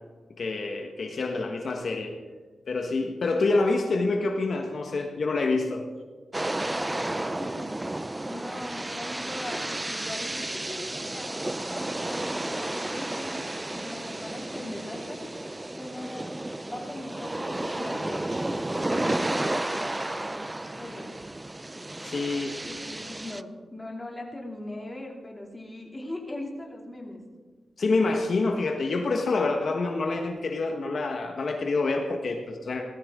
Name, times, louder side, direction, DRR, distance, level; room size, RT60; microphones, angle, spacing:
voice 1, 0.4-2.1 2.7-5.8 22.0-22.6 27.8-32.8, left 3 dB, 60° left, 2 dB, 1.3 m, -27 dB
sound 1, 6.3-23.4, right 1 dB, 15° right, 0.5 m, -32 dB
voice 2, 6.5-7.9 8.2-11.4 11.7-16.3 16.6-21.1 22.6-27.2, left 1 dB, 15° left, -1 dB, 2.7 m, -40 dB
17.5 x 14.0 x 3.7 m, 1.5 s
wide cardioid pair, 95°, 0 cm